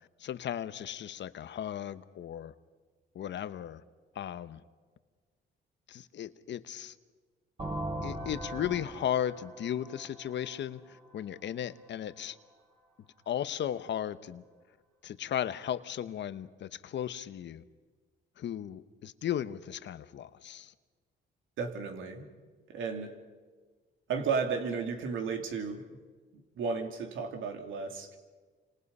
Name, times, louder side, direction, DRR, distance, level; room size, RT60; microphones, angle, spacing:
voice 1, 0.2-2.5 3.1-3.8 4.2-4.6 5.9-6.9 8.0-12.4 13.3-14.4 15.0-17.6 18.4-20.7, left 10 dB, 65° left, 13 dB, 1.0 m, -36 dB
sound 1, 7.6-11.3, right 1 dB, 30° right, 5.0 m, -40 dB
voice 2, 21.6-22.3 22.7-23.2 24.1-25.9 26.5-28.2, right 5 dB, 80° right, 5 dB, 2.8 m, -33 dB
29.0 x 26.5 x 5.5 m, 1.4 s
cardioid pair, 90°, 20 cm